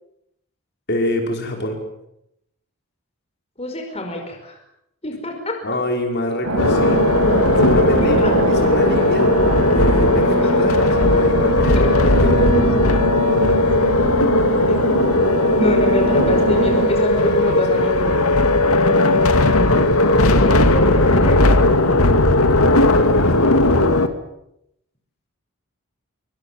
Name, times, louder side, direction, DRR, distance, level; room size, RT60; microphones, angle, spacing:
voice 1, 0.9-1.8 5.6-7.1 7.6-9.3 9.7-12.7 15.6-15.7 16.6-17.8 22.5-23.7, left 1 dB, 50° left, 3 dB, 5.7 m, -26 dB
voice 2, 3.6-4.6 5.0-5.6 8.0-8.3 11.3-11.4 11.8-11.9 14.7-15.1 15.5-18.1 20.4-21.8, equal, 25° left, 3 dB, 5.2 m, -26 dB
sound 1, 6.4-16.9, right 1 dB, 70° right, 7.2 m, -24 dB
sound 2, 6.6-24.1, left 2 dB, 75° left, 2.3 m, -16 dB
26.5 x 25.0 x 7.6 m, 0.80 s
head